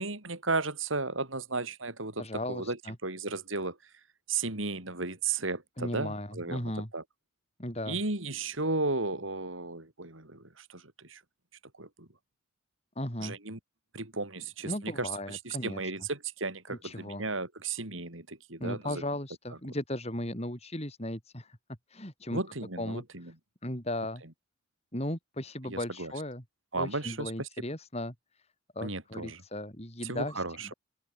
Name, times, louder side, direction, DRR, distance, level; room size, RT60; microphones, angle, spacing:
voice 1, 0.0-3.8 4.3-7.0 7.9-11.2 11.8-12.1 13.2-13.6 13.9-19.0 22.3-23.3 25.6-26.1 26.7-27.5 28.8-29.4 30.0-30.7, right 3 dB, 90° right, 5.4 m, -34 dB
voice 2, 2.2-3.0 5.8-6.9 7.6-8.0 13.0-13.4 14.7-15.9 16.7-17.2 18.6-21.6 21.9-22.4 22.8-23.0 23.6-24.2 24.9-26.4 26.8-28.1 28.8-30.4, left 1 dB, 30° left, 5.8 m, -36 dB
open air
head